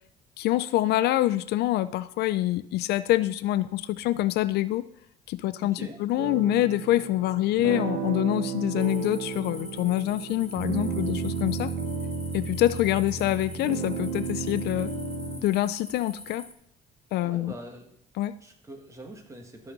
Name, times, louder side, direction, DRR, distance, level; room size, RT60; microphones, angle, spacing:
voice 1, 0.4-4.9 5.3-11.7 12.3-14.9 15.4-16.5 17.1-17.5 18.2-18.3, left 15 dB, 75° left, 15 dB, 0.5 m, -26 dB
voice 2, 5.6-6.0 13.2-13.5 17.2-17.9 18.4-19.7, right 1 dB, 20° right, 3 dB, 2.0 m, -44 dB
sound 1, 6.2-15.4, right 5 dB, 90° right, 1.6 m, -33 dB
sound 2, 8.8-16.5, left 1 dB, 5° left, 1.0 m, -45 dB
12.5 x 6.9 x 4.0 m, 0.68 s
cardioid pair, 110°, 17 cm